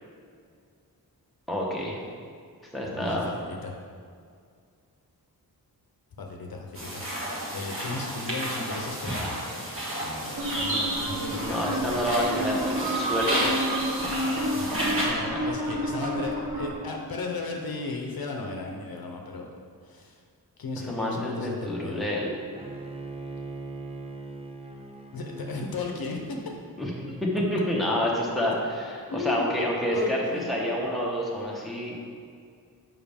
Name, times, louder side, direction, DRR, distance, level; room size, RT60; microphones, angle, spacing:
voice 1, 1.5-2.0 2.7-3.3 11.4-13.5 14.9-15.0 15.3-15.4 20.8-22.3 26.8-30.2 30.5-32.0, equal, ahead, -4 dB, 1.1 m, -28 dB
voice 2, 2.8-3.7 6.2-7.1 7.5-9.5 9.9-12.0 14.5-14.7 15.0-20.2 20.6-22.1 25.1-26.4 29.1-29.4 29.9-30.5, left 3 dB, 65° left, 1 dB, 0.8 m, -35 dB
sound 1, 6.7-15.1, right 1 dB, 35° right, 1.6 m, -31 dB
sound 2, 10.4-16.7, right 1 dB, 60° right, 1.3 m, -30 dB
Bowed string instrument, 22.5-27.6, right 3 dB, 15° right, 0.5 m, -41 dB
7.1 x 5.5 x 3.5 m, 2.2 s
wide cardioid pair, 130°, 38 cm